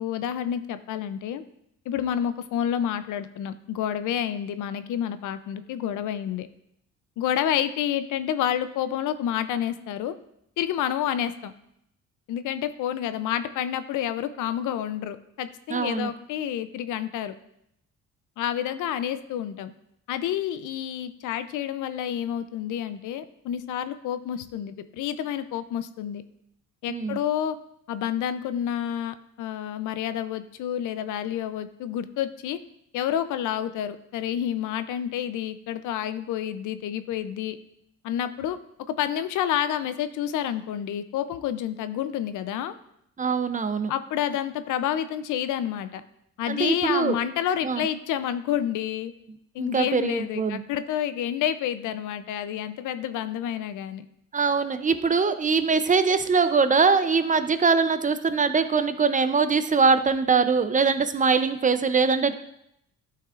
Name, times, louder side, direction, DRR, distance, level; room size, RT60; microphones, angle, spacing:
voice 1, 0.0-1.4 1.9-6.5 7.2-10.1 10.6-11.5 12.3-17.3 18.4-19.7 20.1-26.2 26.8-27.6 27.9-32.6 32.9-37.6 38.0-38.6 38.9-42.7 43.9-46.0 46.4-49.1 49.5-54.0, left 10 dB, 80° left, 12 dB, 0.6 m, -29 dB
voice 2, 15.7-16.1 26.9-27.2 43.2-43.9 46.5-47.2 47.6-47.8 49.6-50.6 54.3-62.3, right 5 dB, 25° right, 10 dB, 0.5 m, -22 dB
11.5 x 5.8 x 2.5 m, 0.76 s
cardioid pair, 90°, 30 cm